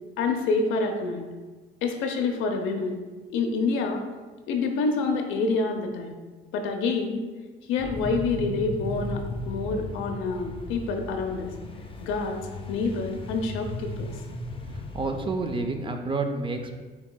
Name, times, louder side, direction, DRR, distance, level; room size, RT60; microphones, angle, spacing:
voice 1, 0.2-1.2 1.8-3.0 3.3-4.0 4.5-6.1 6.5-7.2 7.7-11.5 12.0-12.4 12.7-14.1, left 4 dB, 70° left, 4 dB, 0.7 m, -27 dB
sound 1, 7.8-15.7, left 1 dB, 25° left, 0.5 m, -36 dB
voice 2, 14.7-16.8, right 3 dB, 25° right, 5 dB, 0.5 m, -30 dB
7.0 x 3.0 x 2.2 m, 1.3 s
supercardioid pair, 90°, 21 cm